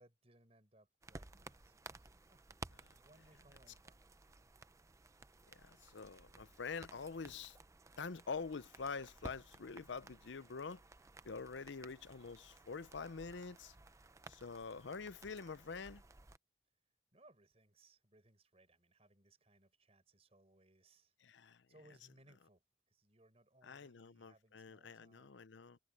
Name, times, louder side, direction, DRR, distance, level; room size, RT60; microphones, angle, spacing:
voice 1, 0.0-2.4 2.8-4.0 17.1-21.1 21.7-25.3 25.7-25.8, right 1 dB, 35° right, 4.5 m, -68 dB
sound 1, 1.0-16.4, right 2 dB, 15° right, 0.5 m, -57 dB
voice 2, 5.5-7.6 8.0-10.8 11.2-13.8 14.3-16.0 21.2-21.6 23.6-25.8, left 4 dB, 85° left, 0.7 m, -46 dB
head